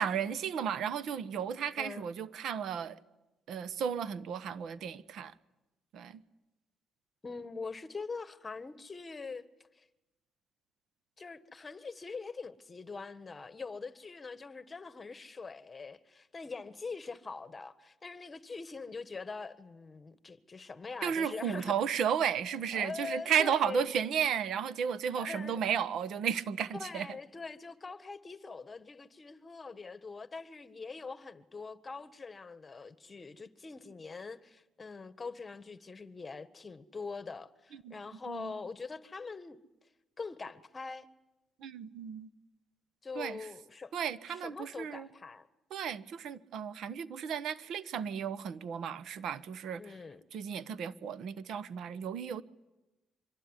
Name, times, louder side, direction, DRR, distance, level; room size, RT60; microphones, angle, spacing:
voice 1, 0.0-3.0 3.5-5.3 5.9-6.2 21.0-27.1 37.8-37.9 38.3-38.5 41.6-42.3 43.2-43.4 43.9-45.1 45.7-49.9 50.3-52.4, right 8 dB, 75° right, 1.1 m, -34 dB
voice 2, 7.2-9.5 9.7-9.8 11.2-21.7 22.7-23.9 25.1-25.6 26.7-39.6 40.2-41.1 43.0-43.9 44.3-45.5 49.8-50.2, left 4 dB, 30° left, 1.5 m, -43 dB
25.0 x 23.0 x 9.9 m
cardioid pair, 90°, 0 cm